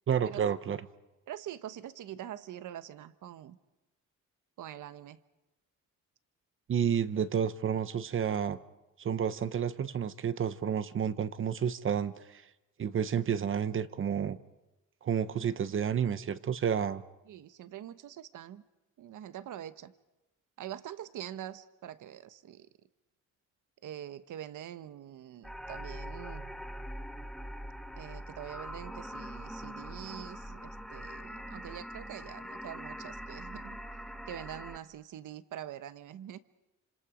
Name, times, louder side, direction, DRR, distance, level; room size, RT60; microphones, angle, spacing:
voice 1, 0.1-0.9 6.7-8.6 9.0-12.4 12.8-14.4 15.0-17.0, right 8 dB, 40° right, 13 dB, 0.8 m, -30 dB
voice 2, 1.3-3.6 4.6-5.2 17.3-18.6 19.0-19.9 20.6-22.7 23.8-26.5 28.0-33.8 34.3-36.4, right 11 dB, 70° right, 13 dB, 1.1 m, -44 dB
sound 1, 25.4-34.8, equal, ahead, 0.9 m, -43 dB
29.0 x 26.5 x 5.1 m, 1.0 s
wide cardioid pair, 175°, 32 cm